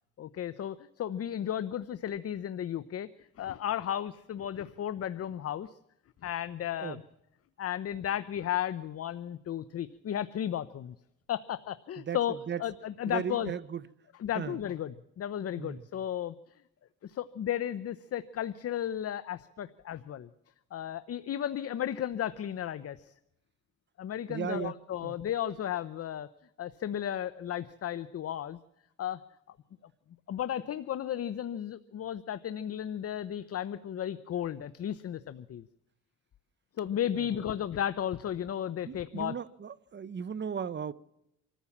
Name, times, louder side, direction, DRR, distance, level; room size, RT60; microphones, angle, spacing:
voice 1, 0.2-5.7 6.2-7.0 7.6-10.9 11.3-13.5 14.2-16.3 17.0-20.3 20.7-23.1 24.0-26.3 26.6-28.6 29.0-29.2 30.3-35.7 36.8-39.4, left 10 dB, 50° left, 0.8 m, -34 dB
voice 2, 12.0-12.6 13.1-13.8 14.3-14.6 15.6-15.8 24.3-24.8 25.0-25.2 37.2-37.4 38.9-40.9, right 7 dB, 35° right, 0.9 m, -36 dB
25.5 x 14.5 x 7.3 m
cardioid pair, 90°, 30 cm